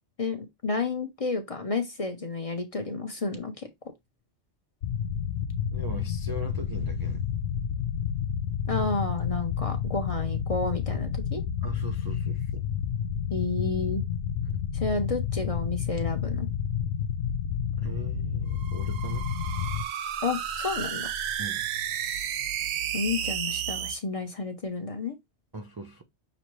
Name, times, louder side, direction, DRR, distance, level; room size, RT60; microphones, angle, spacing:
voice 1, 0.6-3.5 8.7-11.4 13.3-14.0 14.7-16.5 20.2-21.1 22.9-25.2, left 4 dB, 35° left, 0.7 m, -31 dB
sound 1, 4.8-19.8, left 8 dB, 70° left, 0.9 m, -30 dB
voice 2, 5.7-7.3 11.6-12.7 14.4-14.6 17.8-19.3 21.4-21.7 25.5-26.0, right 2 dB, 35° right, 0.4 m, -40 dB
sound 2, 18.5-24.0, right 9 dB, 70° right, 0.8 m, -32 dB
6.1 x 2.8 x 3.0 m
omnidirectional pair, 1.2 m